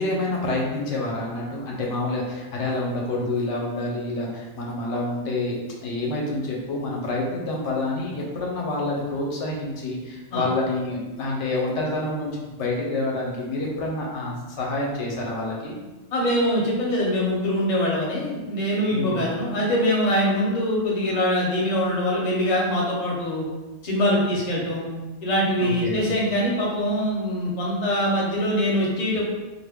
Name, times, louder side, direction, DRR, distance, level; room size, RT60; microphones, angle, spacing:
voice 1, 0.0-5.6 5.8-15.8 18.9-19.2 25.6-26.1, left 2 dB, 90° left, -2 dB, 1.0 m, -28 dB
voice 2, 16.1-23.5 23.8-24.9 25.2-29.2, equal, 45° left, -4 dB, 0.7 m, -23 dB
2.2 x 2.1 x 3.3 m, 1.2 s
omnidirectional pair, 1.2 m